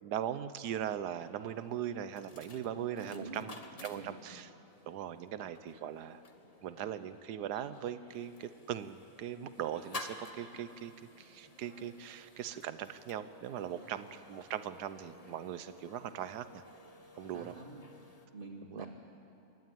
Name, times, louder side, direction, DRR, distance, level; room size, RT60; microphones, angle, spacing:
voice 1, 0.0-3.6 3.8-4.5 4.9-6.2 6.6-10.9 11.2-16.6 17.1-17.5 18.7-18.9, right 10 dB, 85° right, 13 dB, 1.4 m, -40 dB
sound 1, 1.2-18.3, left 3 dB, 25° left, 1.1 m, -53 dB
voice 2, 2.9-3.5 3.9-4.2 9.9-10.0 13.7-14.0 17.2-18.9, right 2 dB, 30° right, 0 dB, 2.7 m, -48 dB
26.5 x 12.0 x 9.2 m, 2.8 s
omnidirectional pair, 1.7 m